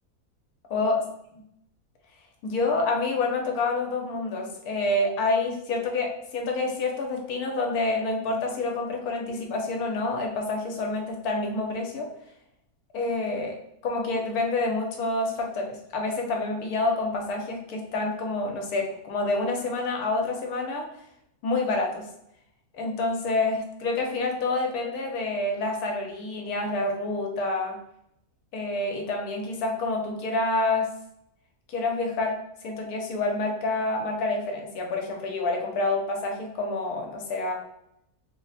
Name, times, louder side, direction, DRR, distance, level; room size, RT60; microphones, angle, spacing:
voice 1, 2.4-12.1 12.9-13.6 13.8-20.9 21.4-22.1 22.7-27.8 28.5-30.9 31.7-32.4 32.6-37.5, left 2 dB, 80° left, 1 dB, 1.2 m, -28 dB
3.2 x 2.1 x 4.0 m, 0.77 s
omnidirectional pair, 1.6 m